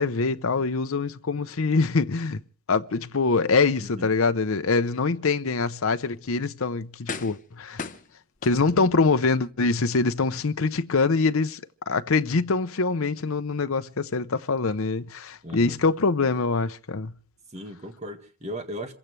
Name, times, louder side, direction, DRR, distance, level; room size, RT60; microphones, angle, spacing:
voice 1, 0.0-2.4 2.7-7.8 8.4-11.6 11.9-17.1, left 4 dB, 75° left, 0.7 m, -24 dB
voice 2, 3.8-4.1 8.7-8.9 15.4-15.8 17.5-18.9, equal, 30° right, 1.9 m, -37 dB
sound 1, 6.1-6.3 7.1-7.5 7.8-9.0 9.6-9.7, left 4 dB, 35° left, 1.0 m, -37 dB
27.0 x 16.0 x 3.3 m
head